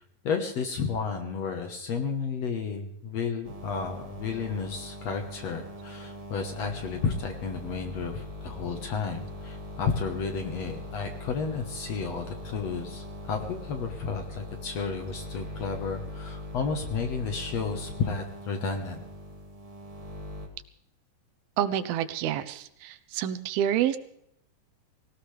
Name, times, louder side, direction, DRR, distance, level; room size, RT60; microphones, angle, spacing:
voice 1, 0.2-19.0, left 5 dB, 60° left, 5 dB, 2.0 m, -32 dB
sound 1, 3.4-20.5, left 1 dB, 35° right, 0.5 m, -41 dB
voice 2, 21.6-24.0, right 10 dB, 85° right, 12 dB, 2.7 m, -28 dB
19.0 x 18.0 x 3.4 m, 0.75 s
omnidirectional pair, 4.2 m